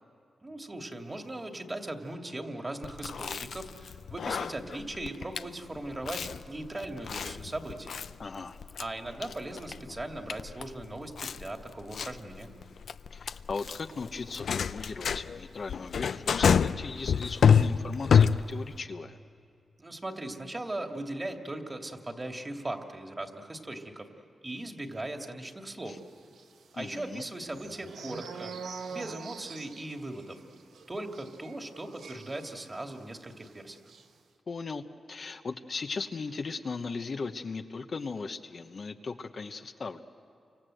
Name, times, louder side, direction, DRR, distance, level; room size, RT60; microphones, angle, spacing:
voice 1, 0.4-8.0 8.8-12.5 19.8-24.1 24.4-26.0 26.7-28.5 28.9-30.4 30.9-33.8, right 1 dB, 30° right, 4 dB, 2.6 m, -39 dB
Chewing mastication, 2.8-18.8, left 7 dB, 75° left, 0.6 m, -29 dB
voice 2, 8.2-8.6 13.1-19.2 25.9-26.0 26.8-27.2 34.5-34.8 35.1-40.0, left 4 dB, 60° left, 6 dB, 1.1 m, -37 dB
sound 1, 26.3-33.0 33.3-33.5 33.8-34.0, right 5 dB, 90° right, 1.2 m, -45 dB
29.0 x 25.5 x 7.9 m, 2.4 s
cardioid pair, 55°, 0 cm